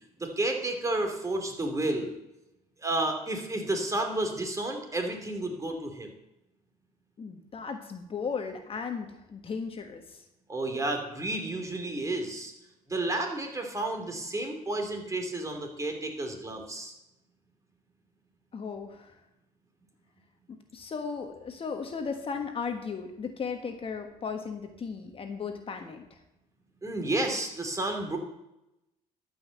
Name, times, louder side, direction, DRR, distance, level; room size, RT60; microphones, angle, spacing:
voice 1, 0.2-2.1 2.8-6.1 10.5-12.5 12.9-16.9 26.8-28.2, right 2 dB, 20° right, 3 dB, 2.8 m, -31 dB
voice 2, 7.2-10.2 18.5-19.1 20.7-26.2, left 5 dB, 35° left, 5 dB, 1.4 m, -36 dB
12.5 x 5.7 x 7.7 m, 0.88 s
supercardioid pair, 95°, 15 cm